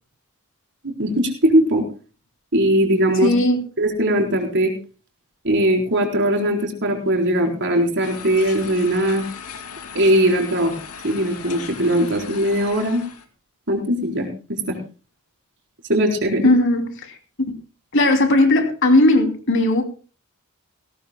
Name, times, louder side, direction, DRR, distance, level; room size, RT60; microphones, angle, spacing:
voice 1, 0.8-1.9 2.5-3.3 3.8-4.7 5.4-9.2 9.9-10.7 11.0-13.0 13.7-14.8 15.9-16.5, right 1 dB, 55° right, 4.2 m, -20 dB
voice 2, 3.2-3.6 16.4-17.2 17.9-19.8, left 2 dB, 55° left, 2.9 m, -17 dB
sound 1, 8.0-13.2, left 6 dB, 85° left, 2.4 m, -37 dB
19.0 x 17.5 x 2.2 m
head